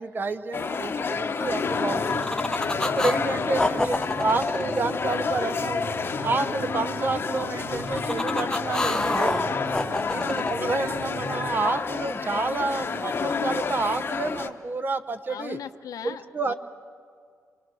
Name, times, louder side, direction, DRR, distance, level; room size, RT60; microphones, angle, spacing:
voice 1, 0.0-2.3 2.8-5.8 6.2-9.4 10.1-15.6 16.0-16.5, right 3 dB, 35° right, 11 dB, 0.8 m, -29 dB
sound 1, 0.5-14.5, left 5 dB, 40° left, 0.9 m, -29 dB
sound 2, 1.4-11.7, right 7 dB, 85° right, 0.6 m, -42 dB
sound 3, 1.7-3.2 3.5-5.7 7.5-10.5, left 2 dB, 10° left, 0.7 m, -28 dB
voice 2, 2.7-3.8 9.8-10.4 15.3-16.5, left 8 dB, 80° left, 9 dB, 0.8 m, -41 dB
26.0 x 23.0 x 6.3 m, 2.2 s
wide cardioid pair, 140°, 6 cm